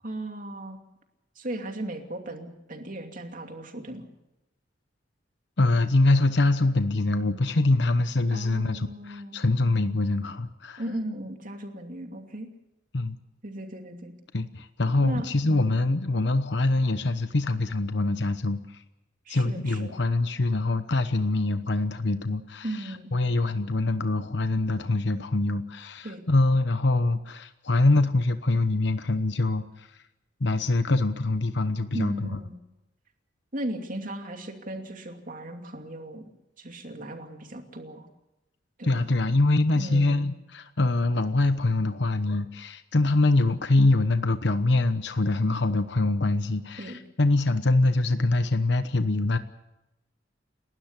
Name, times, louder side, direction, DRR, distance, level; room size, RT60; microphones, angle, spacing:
voice 1, 0.0-0.8 1.4-4.1 8.3-9.4 10.8-12.5 13.4-14.1 15.0-15.7 19.3-19.9 22.6-23.1 26.0-26.3 31.9-32.6 33.5-36.3 36.6-38.1 38.8-39.0 39.8-40.3 46.8-47.0, right 1 dB, 45° right, 4 dB, 2.7 m, -36 dB
voice 2, 5.6-10.8 12.9-13.2 14.3-18.8 19.3-22.7 23.1-29.9 30.4-32.3 38.8-49.4, left 2 dB, 65° left, 10 dB, 1.0 m, -24 dB
29.5 x 12.5 x 8.3 m, 0.94 s
head